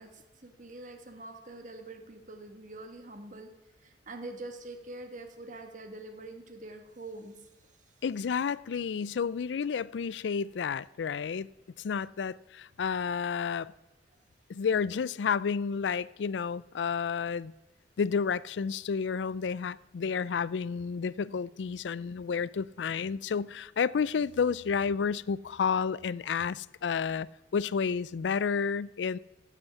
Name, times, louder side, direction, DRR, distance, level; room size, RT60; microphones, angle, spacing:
voice 1, 0.0-3.5 3.8-7.7, right 2 dB, 45° right, 1.5 m, -45 dB
voice 2, 8.0-11.5 11.8-13.7 14.5-17.5 18.0-27.3 27.5-29.2, left 6 dB, 85° left, 0.4 m, -31 dB
15.0 x 8.1 x 7.1 m
head